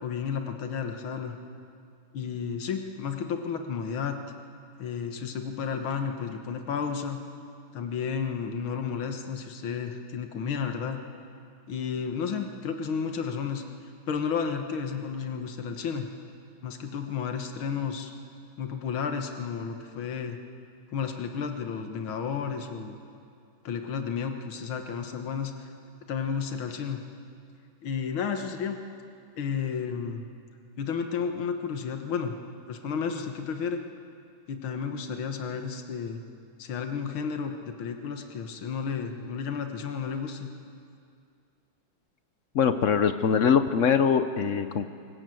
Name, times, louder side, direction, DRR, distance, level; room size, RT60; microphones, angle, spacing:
voice 1, 0.0-1.4 2.1-4.2 4.8-7.2 7.7-11.0 11.7-13.6 14.1-16.1 16.6-18.1 18.6-20.4 20.9-23.0 23.6-25.7 26.1-27.0 27.8-28.8 29.4-30.3 30.8-32.4 32.7-33.8 34.5-36.2 36.6-40.5, left 6 dB, 90° left, 5 dB, 2.1 m, -32 dB
voice 2, 42.5-44.8, left 7 dB, 60° left, 10 dB, 0.8 m, -23 dB
24.5 x 19.0 x 7.8 m, 2.4 s
omnidirectional pair, 2.2 m